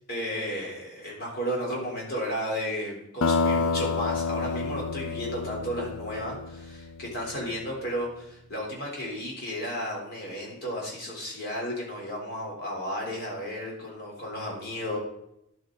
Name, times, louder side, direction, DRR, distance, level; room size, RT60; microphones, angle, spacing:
voice 1, 0.1-15.0, equal, 45° left, -2 dB, 3.6 m, -33 dB
sound 1, 3.2-7.5, left 4 dB, 65° left, 0.5 m, -29 dB
11.5 x 8.0 x 3.9 m, 0.81 s
head